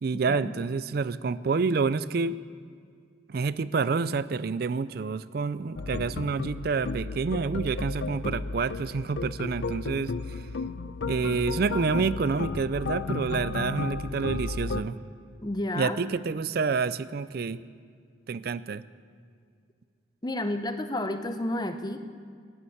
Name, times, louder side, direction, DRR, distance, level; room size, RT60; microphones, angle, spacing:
voice 1, 0.0-2.4 3.3-10.4 11.1-15.0 15.8-17.6 18.3-18.8, right 4 dB, 55° right, 16 dB, 0.4 m, -28 dB
sound 1, 5.8-14.8, left 3 dB, 85° left, 0.6 m, -33 dB
voice 2, 15.4-16.0 20.2-22.0, left 1 dB, 20° left, 9 dB, 0.7 m, -31 dB
12.5 x 11.5 x 8.6 m, 2.1 s
head